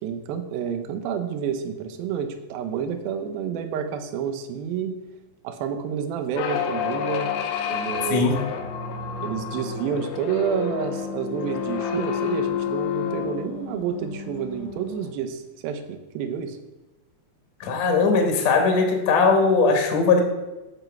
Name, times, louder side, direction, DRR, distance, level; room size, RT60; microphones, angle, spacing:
voice 1, 0.0-5.0 5.4-7.3 7.7-8.4 9.2-16.6, right 7 dB, 75° right, 8 dB, 2.4 m, -29 dB
sound 1, 6.3-15.1, left 7 dB, 85° left, 2.9 m, -29 dB
voice 2, 8.1-8.4 17.6-20.2, left 4 dB, 60° left, 3 dB, 1.9 m, -19 dB
13.5 x 5.9 x 4.6 m, 1.1 s
omnidirectional pair, 4.7 m